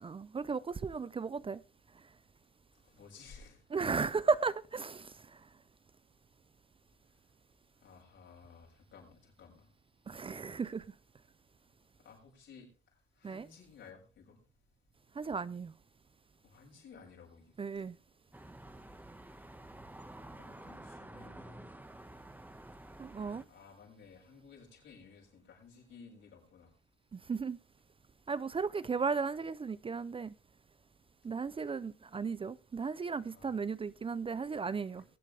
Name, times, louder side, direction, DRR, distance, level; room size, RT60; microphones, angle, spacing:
voice 1, 0.0-1.6 3.7-5.1 10.1-10.8 13.2-13.5 15.2-15.7 17.6-18.0 23.0-23.4 27.1-27.6 28.3-30.3 31.2-35.0, right 5 dB, 25° right, 0.5 m, -35 dB
voice 2, 2.9-3.6 7.8-9.7 12.0-12.7 13.2-14.4 16.4-17.5 20.2-21.7 23.5-26.7 33.3-33.6 34.9-35.0, left 5 dB, 70° left, 7.2 m, -56 dB
sound 1, 18.3-23.5, right 1 dB, 10° right, 1.4 m, -50 dB
22.5 x 8.5 x 3.3 m
cardioid pair, 90°, 20 cm